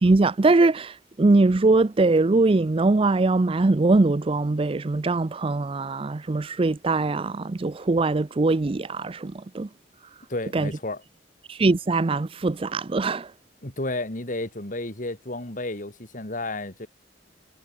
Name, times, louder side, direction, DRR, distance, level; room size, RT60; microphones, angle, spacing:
voice 1, 0.0-9.7 10.5-10.7 11.5-13.3, right 3 dB, 30° right, 0.5 m, -22 dB
voice 2, 10.3-11.0 13.6-16.9, left 2 dB, 45° left, 3.1 m, -32 dB
head